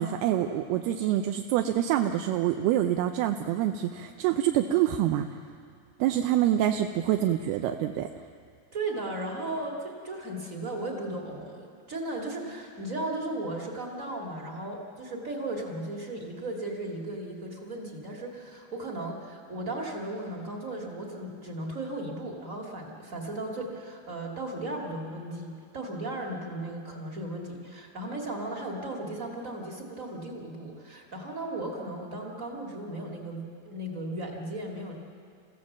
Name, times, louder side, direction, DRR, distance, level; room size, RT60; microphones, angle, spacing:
voice 1, 0.0-5.3 6.0-8.1, right 12 dB, 85° right, 6 dB, 2.6 m, -26 dB
voice 2, 8.7-34.9, right 2 dB, 25° right, 0 dB, 1.8 m, -36 dB
29.5 x 15.5 x 7.4 m, 2.3 s
omnidirectional pair, 4.6 m